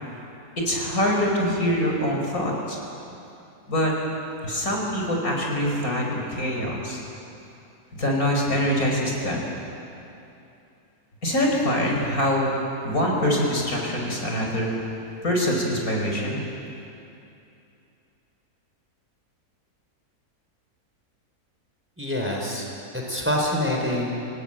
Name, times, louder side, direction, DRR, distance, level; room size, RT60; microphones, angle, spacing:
voice 1, 0.7-2.8 3.7-3.9 4.4-7.0 7.9-9.4 11.2-12.5 12.8-14.7 15.2-16.4, equal, 60° left, -1 dB, 5.2 m, -24 dB
voice 2, 22.0-22.7 22.9-24.3, left 1 dB, 5° right, -1 dB, 4.5 m, -26 dB
29.0 x 18.0 x 9.1 m, 2.7 s
omnidirectional pair, 1.7 m